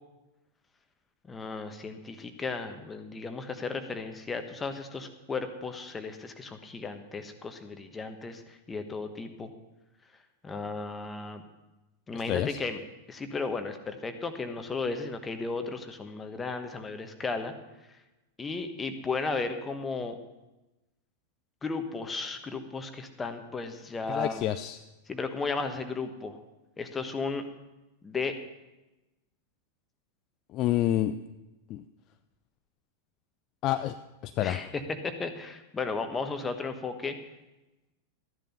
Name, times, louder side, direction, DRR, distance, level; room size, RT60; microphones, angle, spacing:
voice 1, 1.3-9.5 10.4-11.4 12.1-12.8 13.1-17.5 18.4-20.2 21.6-24.4 25.1-26.4 26.8-27.4 28.0-28.3 34.4-37.1, left 4 dB, 15° left, 8 dB, 1.2 m, -34 dB
voice 2, 24.1-24.8 30.5-31.1 31.7-31.8 33.6-33.9 34.2-34.6, left 13 dB, 35° left, 10 dB, 0.4 m, -28 dB
13.5 x 10.5 x 5.5 m, 1.0 s
figure-of-eight pair, 90°, 0 cm